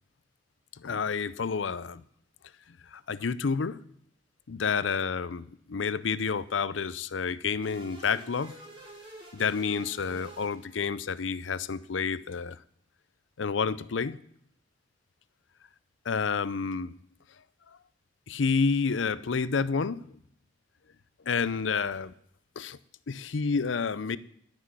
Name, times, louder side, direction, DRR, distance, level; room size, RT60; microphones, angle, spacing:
voice 1, 0.8-2.0 2.9-3.8 4.5-8.6 9.3-12.6 13.4-14.2 16.1-17.0 18.3-20.1 21.3-22.1 22.6-22.8 23.1-24.2, left 5 dB, 90° left, 17 dB, 0.6 m, -29 dB
sound 1, 7.6-11.2, right 2 dB, 30° right, 3.4 m, -49 dB
14.0 x 6.3 x 9.8 m, 0.69 s
head